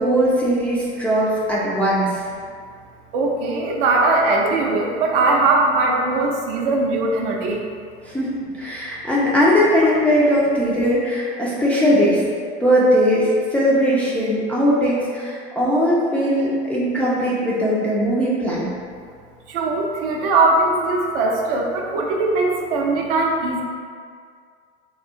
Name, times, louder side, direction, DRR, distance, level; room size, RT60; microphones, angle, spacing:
voice 1, 0.0-2.2 8.0-12.2 12.6-18.7, equal, 5° left, -8 dB, 0.3 m, -19 dB
voice 2, 3.1-7.6 19.5-23.6, right 3 dB, 55° right, 0 dB, 0.5 m, -20 dB
3.5 x 2.3 x 2.6 m, 2.1 s
figure-of-eight pair, 70°, 34 cm